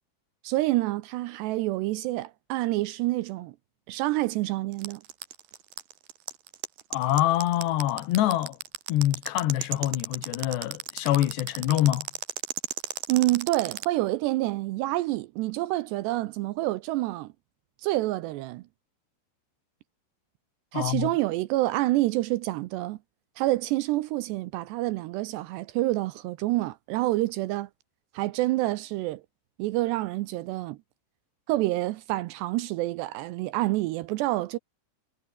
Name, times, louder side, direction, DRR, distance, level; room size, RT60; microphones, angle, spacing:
voice 1, 0.4-3.6 3.9-5.0 13.1-17.3 17.8-18.6 20.7-23.0 23.4-27.7 28.1-29.2 29.6-30.8 31.5-34.6, right 18 dB, 80° right, 2.7 m, -27 dB
sound 1, 4.7-13.8, right 13 dB, 65° right, 2.9 m, -34 dB
voice 2, 6.9-8.6 8.9-12.1 20.7-21.1, left 13 dB, 70° left, 3.6 m, -25 dB
omnidirectional pair, 5.3 m